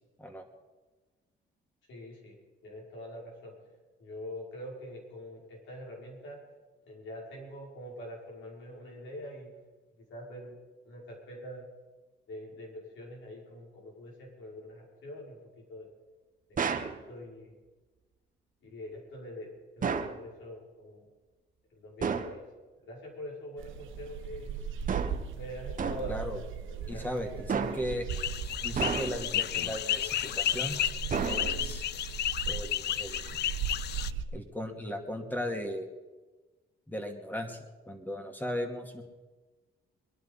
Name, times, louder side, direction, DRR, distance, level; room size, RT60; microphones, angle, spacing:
voice 1, 1.9-2.4 2.6-3.5 4.0-6.4 6.8-9.5 10.1-10.5 10.9-11.6 12.3-15.4 15.7-15.9 16.7-17.6 18.6-19.5 19.8-21.0 21.7-22.4 22.8-24.6 25.3-26.3 26.7-27.1 27.5-27.7, equal, 75° left, -2 dB, 5.8 m, -44 dB
sound 1, 16.6-17.0 19.8-20.2 22.0-22.4 24.9-25.3 25.8-26.2 27.5-28.0 28.8-29.3 31.1-31.8, right 6 dB, 40° right, 1.2 m, -32 dB
sound 2, 23.6-34.3, right 7 dB, 80° right, 1.2 m, -38 dB
voice 2, 26.1-26.4 26.9-28.0 28.6-30.8 31.2-31.8 32.5-33.2 34.3-35.9 36.9-39.0, equal, 10° left, 4 dB, 2.5 m, -37 dB
sound 3, 28.1-34.1, left 11 dB, 60° left, 0.5 m, -32 dB
22.5 x 11.0 x 5.7 m, 1.2 s
cardioid pair, 90°, 20 cm